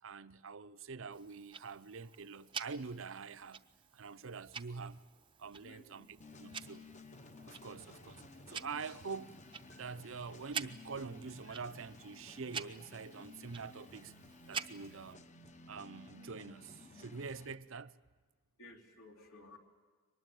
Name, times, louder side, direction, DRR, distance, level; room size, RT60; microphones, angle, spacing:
voice 1, 0.0-3.6 3.9-5.0 5.4-6.8 7.4-9.4 9.8-14.1 14.5-15.2 15.7-17.9, right 5 dB, 65° right, 0.6 m, -45 dB
Tick-tock, 1.1-15.1, right 6 dB, 25° right, 0.6 m, -49 dB
voice 2, 5.6-6.1 11.5-11.6 18.6-19.6, left 2 dB, 75° left, 3.2 m, -56 dB
sound 1, 6.2-17.6, left 3 dB, 35° left, 1.0 m, -55 dB
23.5 x 20.0 x 9.3 m
head